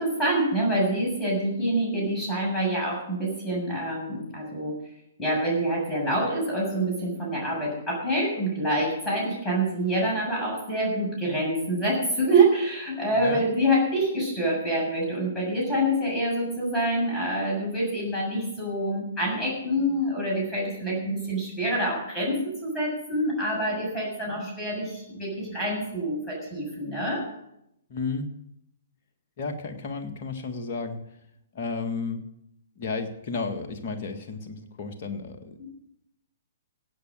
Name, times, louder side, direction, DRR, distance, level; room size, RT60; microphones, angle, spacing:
voice 1, 0.0-4.8 5.2-27.3 35.6-35.7, right 1 dB, 10° left, -4 dB, 7.2 m, -26 dB
voice 2, 13.1-13.4 24.3-24.5 27.9-28.3 29.4-31.0 31.5-32.2 32.8-35.6, left 4 dB, 45° left, 5 dB, 1.8 m, -33 dB
16.5 x 8.7 x 6.4 m, 0.79 s
figure-of-eight pair, 120°, 0 cm